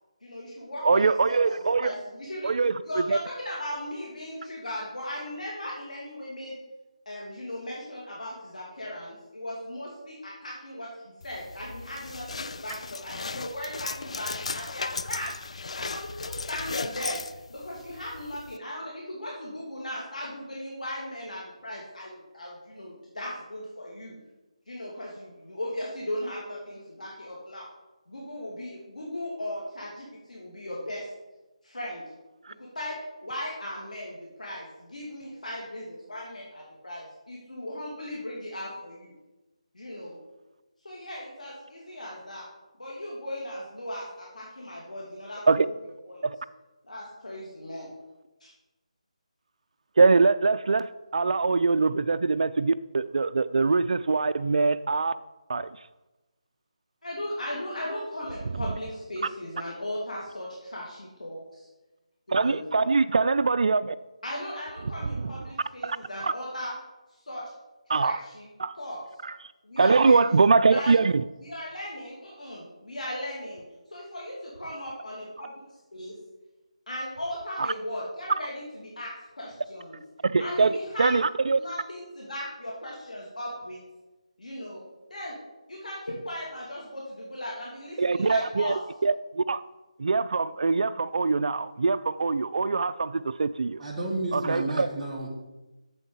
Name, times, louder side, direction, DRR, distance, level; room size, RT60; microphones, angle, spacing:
voice 1, 0.2-1.5 1.8-2.5 2.8-6.5 7.1-10.9 11.2-15.4 15.7-17.2 17.5-24.1 24.7-27.7 28.1-31.1 31.6-32.0 32.6-39.1 39.7-40.2 40.8-42.5 42.8-45.4 45.7-46.3 46.8-47.9 48.4-48.5 57.0-61.7 62.3-62.7 64.2-66.7 67.1-67.4 67.9-68.5 68.8-69.0 69.6-70.3 70.7-70.9 71.4-73.6 73.9-75.5 75.9-76.1 76.9-80.0 80.4-81.1 81.5-83.8 84.4-84.8 85.1-85.4 85.7-88.8, left 1 dB, 85° left, 2.6 m, -37 dB
voice 2, 0.8-1.9 2.4-3.2 32.4-32.5 45.5-45.7 46.2-46.4 50.0-55.1 55.5-55.7 62.3-63.9 65.2-65.3 65.8-66.0 66.2-66.3 67.9-68.2 68.6-68.7 69.2-69.4 69.8-71.2 77.6-77.7 80.2-81.6 88.0-88.7 89.0-89.6 90.0-93.8 94.3-94.9, right 4 dB, 65° right, 0.3 m, -23 dB
sound 1, 11.2-18.6, left 4 dB, 60° left, 0.4 m, -36 dB
voice 3, 93.8-95.3, right 2 dB, 10° right, 1.6 m, -31 dB
7.7 x 7.1 x 5.5 m
figure-of-eight pair, 165°, 4 cm